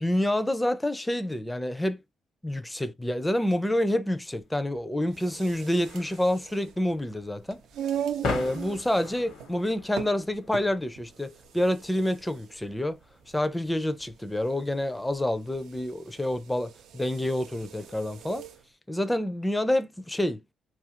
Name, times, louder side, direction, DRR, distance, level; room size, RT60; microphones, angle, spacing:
voice 1, 0.0-2.0 2.4-7.6 8.2-13.0 13.3-18.5 18.9-20.4, left 1 dB, 10° left, 0.4 m, -28 dB
sound 1, 4.3-15.6, left 4 dB, 85° left, 0.9 m, -42 dB
sound 2, 5.1-18.6, right 9 dB, 80° right, 0.4 m, -40 dB
2.6 x 2.4 x 2.8 m
cardioid pair, 90°, 0 cm